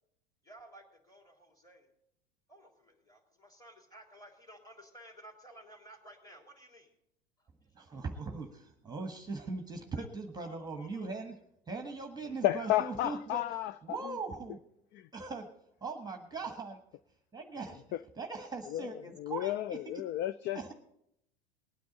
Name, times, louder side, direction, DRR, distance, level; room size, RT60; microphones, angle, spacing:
voice 1, 0.4-1.9 2.5-6.9 7.4-8.0 9.9-10.1 10.4-11.1, right 1 dB, 10° left, 3.4 m, -55 dB
voice 2, 7.7-11.3 11.7-13.4 13.8-14.6 15.1-15.5 15.8-16.8 17.3-17.8 18.2-20.0 20.5-20.7, right 4 dB, 10° right, 1.5 m, -40 dB
voice 3, 12.4-14.1 14.9-15.1 17.9-18.0 18.7-20.7, left 14 dB, 35° left, 0.4 m, -33 dB
19.5 x 9.5 x 4.1 m
hypercardioid pair, 90°, 32 cm